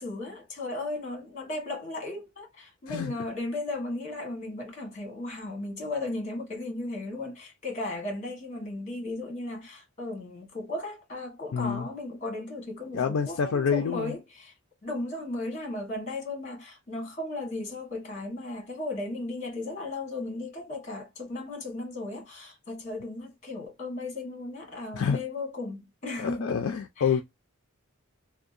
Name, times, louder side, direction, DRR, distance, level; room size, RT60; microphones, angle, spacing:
voice 1, 0.0-14.5 14.8-26.7 27.0-27.1, left 2 dB, 35° left, 1.2 m, -36 dB
voice 2, 11.5-11.9 12.9-14.1 24.9-25.2 26.2-27.2, left 6 dB, 65° left, 0.3 m, -27 dB
2.7 x 2.1 x 2.4 m
head